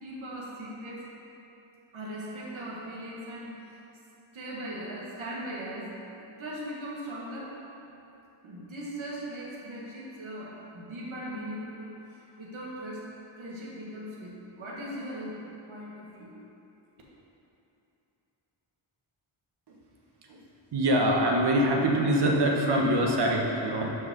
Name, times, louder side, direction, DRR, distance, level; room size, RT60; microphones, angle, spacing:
voice 1, 0.0-1.2 1.9-3.8 4.3-7.6 8.4-13.1 13.4-15.4 15.7-16.3, right 1 dB, 75° right, -4 dB, 1.6 m, -39 dB
voice 2, 20.7-23.9, right 1 dB, 55° right, 0 dB, 1.1 m, -24 dB
6.7 x 6.2 x 3.7 m, 2.9 s
cardioid pair, 70°, 48 cm